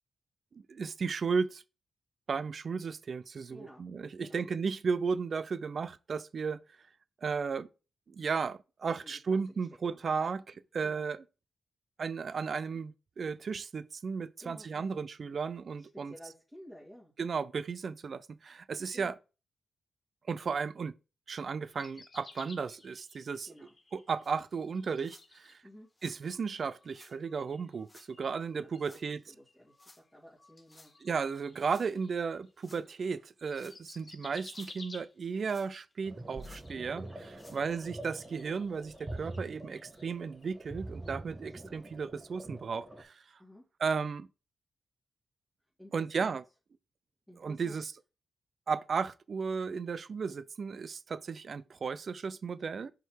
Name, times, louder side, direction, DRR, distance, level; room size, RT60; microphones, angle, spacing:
voice 1, 0.5-1.6 2.3-6.6 7.2-7.7 8.1-11.2 12.0-16.1 17.2-19.1 20.3-20.9 21.3-23.5 23.9-25.6 26.0-29.2 31.0-43.2 43.8-44.3 45.9-46.4 47.4-47.9 48.7-52.9, right 5 dB, 55° right, 0.4 m, -34 dB
voice 2, 3.5-3.9 4.2-4.5 9.0-10.0 10.8-11.1 14.4-14.9 15.8-17.1 18.9-19.1 23.5-23.7 25.6-25.9 28.5-31.0 41.6-41.9 43.4-43.6 45.8-46.4 47.3-47.9, equal, ahead, 2.2 m, -53 dB
sound 1, 21.7-25.9 26.2-33.1 33.4-35.4 36.1-40.7 41.0-41.2, left 3 dB, 40° left, 1.8 m, -56 dB
sound 2, 24.2-24.3 25.0-25.3 25.9-26.2 26.9-27.1 27.8-28.1 28.8-29.1 29.8-30.0 30.6-30.9 31.6-31.9 32.6-32.8 33.4-33.8 34.3-34.8 35.4-35.9 36.4-36.7 37.3-37.6 38.2-38.3 38.7-38.8 39.6-39.7, left 2 dB, 20° left, 1.4 m, -58 dB
sound 3, 36.0-43.0, right 1 dB, 20° right, 1.2 m, -45 dB
5.5 x 3.8 x 4.5 m
cardioid pair, 70°, 0 cm